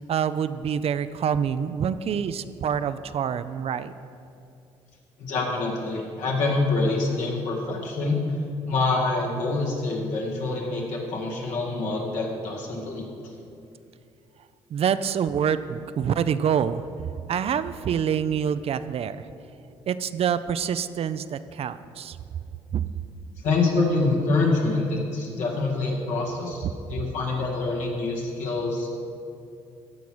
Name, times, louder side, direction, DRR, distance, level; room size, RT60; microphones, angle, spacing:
voice 1, 0.0-3.9 14.7-16.9 17.3-19.2 19.9-22.2 22.7-22.8 26.6-26.7, right 8 dB, 55° right, 13 dB, 0.4 m, -26 dB
voice 2, 5.2-8.2 8.6-13.0 23.4-28.9, left 3 dB, 75° left, -2 dB, 2.0 m, -26 dB
14.0 x 4.8 x 6.2 m, 2.6 s
supercardioid pair, 60°, 12 cm